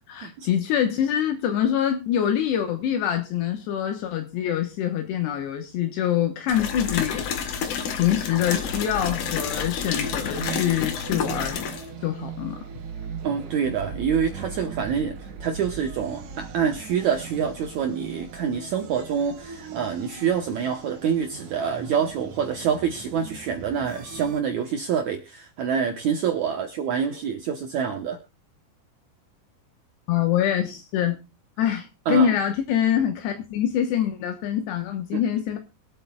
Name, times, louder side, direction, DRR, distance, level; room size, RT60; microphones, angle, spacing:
voice 1, 0.1-7.4 7.9-11.8 12.0-12.6 30.1-31.2 31.6-35.6, left 10 dB, 75° left, 5 dB, 3.2 m, -25 dB
sound 1, 6.5-11.9, left 7 dB, 60° left, 2.4 m, -29 dB
sound 2, 8.4-24.4, right 6 dB, 60° right, 2.6 m, -39 dB
voice 2, 13.2-28.2 32.1-32.3 35.1-35.2, right 7 dB, 80° right, 4 dB, 1.7 m, -26 dB
23.5 x 8.6 x 2.3 m, 0.26 s
omnidirectional pair, 5.0 m